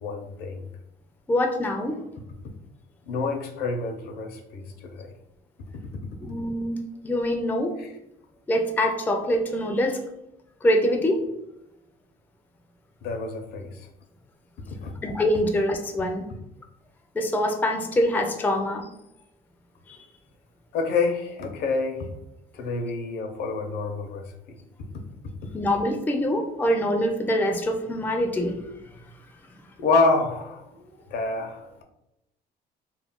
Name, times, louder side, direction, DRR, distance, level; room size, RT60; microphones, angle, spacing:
voice 1, 0.0-0.6 3.1-5.1 13.0-13.8 14.8-14.9 20.7-22.1 22.5-24.6 29.8-31.8, left 3 dB, 70° left, 4 dB, 0.6 m, -27 dB
voice 2, 1.3-2.0 6.2-7.8 8.5-10.1 10.6-11.3 15.0-16.3 17.1-18.9 19.9-20.0 25.5-28.6, left 1 dB, 10° left, 4 dB, 0.3 m, -24 dB
2.3 x 2.1 x 3.5 m, 0.86 s
cardioid pair, 110°, 17 cm